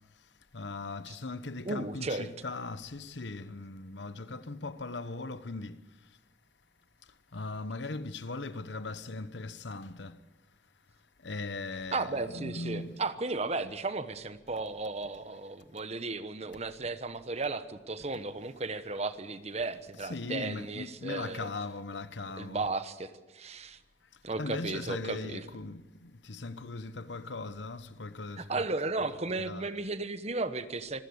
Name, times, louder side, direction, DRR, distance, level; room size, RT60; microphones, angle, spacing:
voice 1, 0.5-5.8 7.3-10.2 11.2-13.0 20.0-22.7 24.3-28.7 29.4-29.7, left 3 dB, 70° left, 1.0 m, -39 dB
voice 2, 1.6-2.3 11.9-21.5 22.4-23.8 24.2-25.4 28.4-31.0, right 3 dB, 35° right, 1.1 m, -35 dB
25.5 x 15.5 x 8.0 m
head